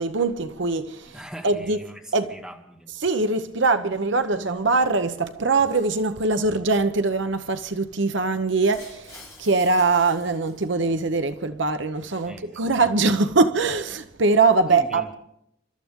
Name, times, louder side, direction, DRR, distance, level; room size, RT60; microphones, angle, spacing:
voice 1, 0.0-1.2 1.4-1.8 2.1-2.4 3.0-15.1, right 3 dB, 60° right, 0.8 m, -22 dB
voice 2, 1.1-2.9 12.2-12.7 14.7-15.1, equal, ahead, 1.9 m, -41 dB
Shatter, 8.7-11.1, left 3 dB, 15° left, 6.1 m, -47 dB
29.5 x 13.0 x 3.7 m
head